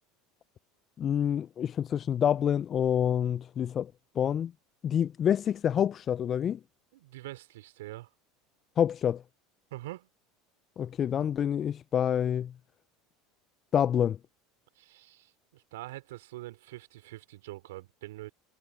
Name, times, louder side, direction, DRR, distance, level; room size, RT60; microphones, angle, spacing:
voice 1, 1.0-3.9 4.2-4.5 4.8-6.6 8.8-9.2 10.8-12.5 13.7-14.2, left 9 dB, 40° left, 0.3 m, -27 dB
voice 2, 6.9-8.1 9.7-10.1 14.7-18.3, right 17 dB, 75° right, 3.0 m, -44 dB
hypercardioid pair, 85°, 0 cm